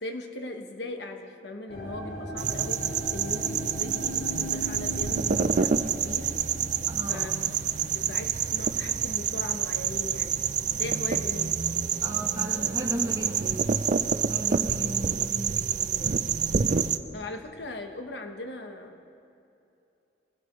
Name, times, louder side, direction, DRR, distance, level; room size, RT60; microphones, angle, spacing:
voice 1, 0.0-6.3 7.1-7.5 7.9-10.4 10.7-11.5 17.1-19.0, left 2 dB, 75° left, 4 dB, 1.2 m, -39 dB
sound 1, 1.7-12.9 13.1-13.8 14.3-14.4, equal, 90° left, 3.7 m, -41 dB
sound 2, 2.4-17.0, right 7 dB, 45° right, 0.4 m, -27 dB
voice 2, 6.9-7.5 11.1-11.2 12.0-13.7 14.3-16.1, right 1 dB, 20° right, 0 dB, 1.1 m, -36 dB
21.0 x 13.0 x 3.1 m, 2.7 s
head